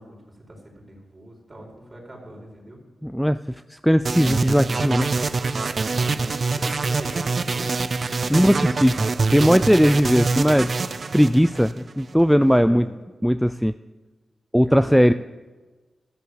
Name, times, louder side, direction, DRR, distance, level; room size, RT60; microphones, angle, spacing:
voice 1, 0.0-2.8 5.7-7.7 12.5-12.9 14.6-15.1, right 1 dB, 35° right, 0 dB, 4.7 m, -41 dB
voice 2, 3.0-3.4 3.8-5.1 8.3-9.0 9.3-10.7 11.1-12.9 13.2-13.7 14.5-15.1, equal, ahead, 12 dB, 0.4 m, -18 dB
sound 1, 4.1-12.1, right 4 dB, 55° right, 0.6 m, -25 dB
13.5 x 6.9 x 8.0 m, 1.3 s
cardioid pair, 50°, 0 cm